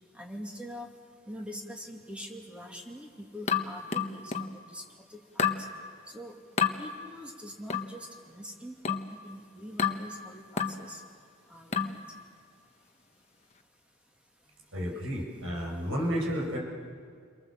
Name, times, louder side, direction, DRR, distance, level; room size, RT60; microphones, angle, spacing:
voice 1, 0.1-0.9 1.3-4.8 5.1-5.5 6.1-6.3 6.8-11.0 11.5-12.0, equal, 5° right, 0 dB, 2.7 m, -44 dB
sound 1, 3.5-4.6 5.4-5.7 6.6-6.8 7.7-8.0 8.8-9.1 9.8-10.1 10.6-10.8 11.7-12.0, left 7 dB, 35° left, 1.2 m, -29 dB
voice 2, 14.7-16.6, equal, 75° right, -1 dB, 6.9 m, -31 dB
29.5 x 23.5 x 7.6 m, 2.1 s
head